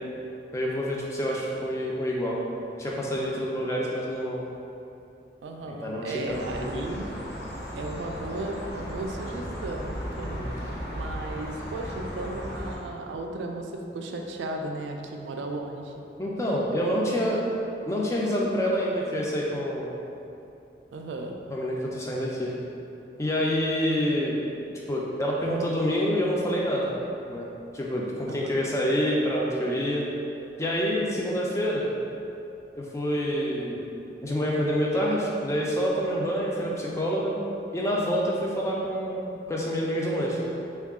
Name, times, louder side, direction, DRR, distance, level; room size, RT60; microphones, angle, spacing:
voice 1, 0.5-2.4 2.8-4.4 5.6-6.4 6.7-7.0 10.2-10.5 16.2-17.4 17.9-20.0 21.5-22.5 23.2-24.4 24.9-26.9 27.3-27.5 27.7-30.1 30.6-31.9 32.7-33.9 34.2-37.3 37.7-40.4, equal, 15° left, -3 dB, 0.4 m, -27 dB
voice 2, 5.4-7.1 7.8-10.4 10.9-15.9 20.9-21.4 28.3-28.7, right 2 dB, 85° right, 3 dB, 0.3 m, -35 dB
sound 1, 6.3-12.8, equal, 55° left, 0.9 m, -36 dB
3.6 x 2.3 x 3.5 m, 2.7 s
head